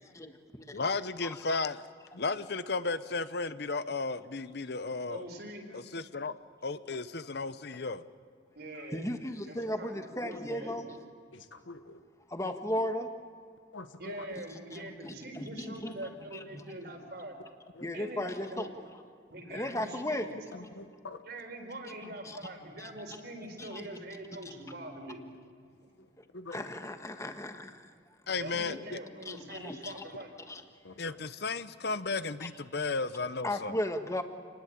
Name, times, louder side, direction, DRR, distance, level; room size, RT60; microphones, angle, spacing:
voice 1, 0.1-0.8 1.3-1.4 8.9-11.0 12.3-13.1 14.3-16.6 17.8-18.7 19.5-20.3 20.6-20.7 22.2-22.4 22.8-22.9 23.6-23.9 26.5-27.9 29.2-30.0 30.5-30.6 33.4-34.2, left 1 dB, 15° left, 7 dB, 1.5 m, -36 dB
voice 2, 0.7-1.8 2.2-5.3 5.7-6.3 6.6-8.0 28.3-29.0 31.0-33.8, left 3 dB, 60° left, 14 dB, 0.9 m, -34 dB
voice 3, 5.1-5.6 8.5-9.2 9.5-10.8 14.0-17.3 17.9-18.7 19.3-20.4 21.2-25.2 25.8-25.9 28.4-30.3, right 1 dB, 55° right, 4 dB, 4.2 m, -43 dB
voice 4, 11.3-12.0 13.7-14.2 17.8-17.9 20.5-21.2 26.3-26.6 30.8-31.1, left 3 dB, 90° left, 9 dB, 1.3 m, -46 dB
28.0 x 20.0 x 8.6 m, 2.2 s
head